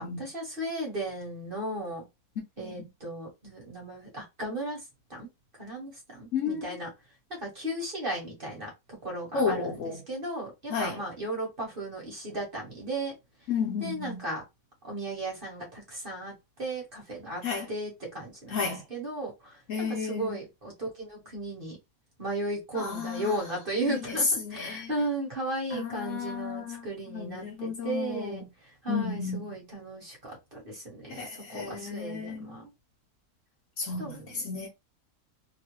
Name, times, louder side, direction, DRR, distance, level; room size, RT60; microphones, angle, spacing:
voice 1, 0.0-2.0 2.6-4.8 5.1-5.3 5.6-6.9 7.4-8.7 9.0-9.7 10.1-13.1 13.8-14.4 14.8-16.3 16.6-17.4 17.7-18.6 18.9-19.5 19.8-21.8 22.2-28.4 28.8-32.7 34.0-34.4, right 1 dB, 40° right, 1.3 m, -35 dB
voice 2, 2.4-2.9 6.3-6.8 9.3-10.0 10.7-11.0 13.5-14.3 17.4-17.7 18.5-18.8 19.7-20.4 22.7-23.3 23.8-24.9 25.7-28.5 28.9-29.6 31.1-32.6 33.8-34.7, left 5 dB, 60° left, 1.0 m, -32 dB
2.9 x 2.2 x 3.0 m
omnidirectional pair, 1.6 m